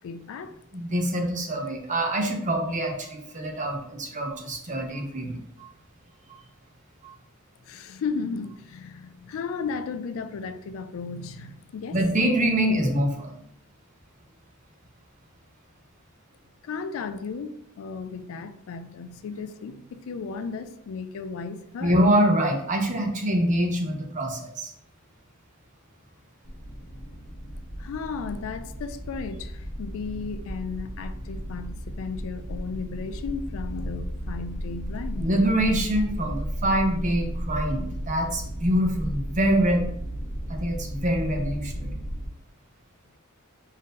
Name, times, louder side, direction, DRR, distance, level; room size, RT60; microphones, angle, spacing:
voice 1, 0.0-0.5 7.6-12.0 16.6-22.1 27.8-35.3, left 5 dB, 65° left, 0.3 m, -35 dB
voice 2, 0.7-5.7 6.3-6.4 7.0-7.1 11.9-13.4 21.8-24.7 35.2-39.9 40.5-41.9, right 1 dB, 35° right, 0.7 m, -25 dB
sound 1, 26.5-42.3, equal, 30° left, 0.7 m, -34 dB
3.7 x 2.7 x 3.8 m
head